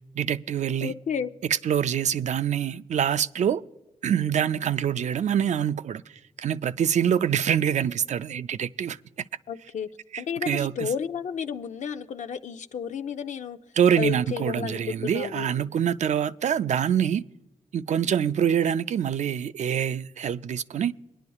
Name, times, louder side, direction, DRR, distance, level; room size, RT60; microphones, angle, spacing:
voice 1, 0.2-0.9 1.5-3.6 4.0-6.0 6.4-9.0 10.1-10.9 13.8-17.2 17.7-20.9, right 9 dB, 70° right, 0.4 m, -25 dB
voice 2, 0.8-1.3 9.5-9.9 10.2-13.6 14.0-15.5, left 7 dB, 75° left, 0.5 m, -32 dB
24.0 x 11.0 x 2.3 m
wide cardioid pair, 155°, 13 cm